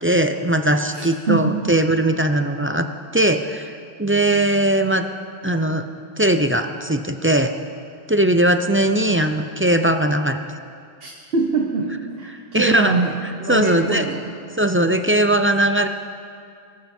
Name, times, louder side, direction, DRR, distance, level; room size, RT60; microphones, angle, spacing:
voice 1, 0.0-2.9 3.1-5.1 5.4-5.9 6.2-7.5 8.1-10.4 12.5-13.0 13.5-14.1 14.6-15.9, right 1 dB, 15° right, 7 dB, 0.4 m, -19 dB
voice 2, 0.9-1.6 11.0-11.9 12.2-13.1 13.4-14.2, right 3 dB, 70° right, 1 dB, 1.4 m, -23 dB
22.5 x 14.0 x 4.4 m, 2.3 s
omnidirectional pair, 1.0 m